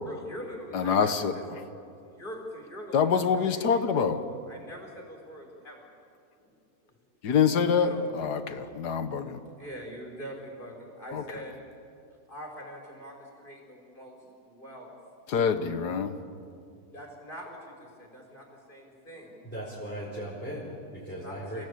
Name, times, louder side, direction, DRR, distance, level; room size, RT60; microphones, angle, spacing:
voice 1, 0.0-1.1 1.5-3.8 4.1-5.9 6.4-6.5 6.9-7.0 7.7-8.1 8.8-11.8 12.3-14.9 16.9-19.4 21.2-21.7, equal, 30° left, 0 dB, 5.0 m, -44 dB
voice 2, 0.7-1.6 2.9-4.2 7.2-9.4 11.1-11.2 15.3-16.2, left 6 dB, 85° left, 10 dB, 1.8 m, -26 dB
voice 3, 19.4-21.7, equal, 5° left, -7 dB, 4.8 m, -38 dB
28.5 x 17.0 x 8.6 m, 2.5 s
omnidirectional pair, 1.7 m